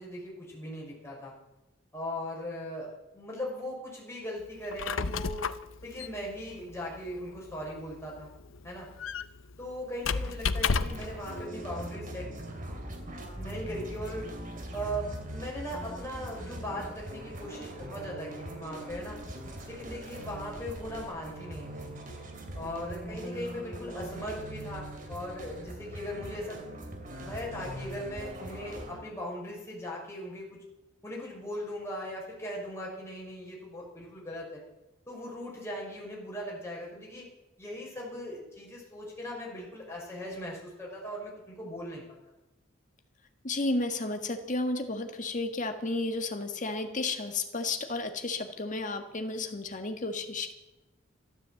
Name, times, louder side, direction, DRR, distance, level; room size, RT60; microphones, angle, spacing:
voice 1, 0.0-1.3 1.9-5.5 5.8-8.3 8.6-8.9 9.6-12.3 13.4-14.2 14.7-19.2 19.6-21.9 22.5-26.6 27.2-30.6 31.0-34.6 35.1-37.2 37.6-42.0, equal, 15° left, -3 dB, 5.8 m, -39 dB
Squeak, 4.6-11.2, left 5 dB, 85° left, 0.7 m, -33 dB
sound 1, 10.8-29.0, right 1 dB, 45° right, 2.8 m, -41 dB
voice 2, 43.4-50.5, left 2 dB, 40° left, 6 dB, 1.7 m, -32 dB
13.0 x 13.0 x 7.8 m, 1.0 s
head